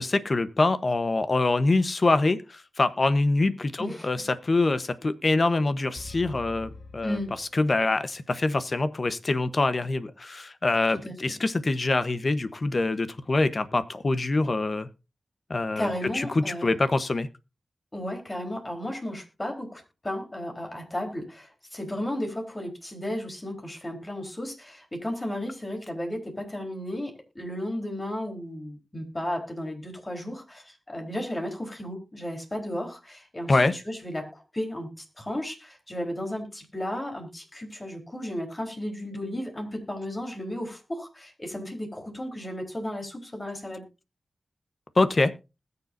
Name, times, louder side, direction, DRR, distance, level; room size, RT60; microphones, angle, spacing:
voice 1, 0.0-14.9 15.5-15.9 16.1-17.3 33.5-33.7 45.0-45.3, left 2 dB, 55° left, 12 dB, 1.0 m, -25 dB
voice 2, 3.8-4.3 7.0-7.3 11.0-11.3 15.8-16.8 17.9-34.9 35.2-43.8, left 1 dB, 30° left, 3 dB, 4.1 m, -34 dB
sound 1, 5.9-8.1, left 3 dB, 80° left, 1.4 m, -45 dB
20.5 x 6.9 x 2.7 m, 0.27 s
cardioid pair, 50°, 0 cm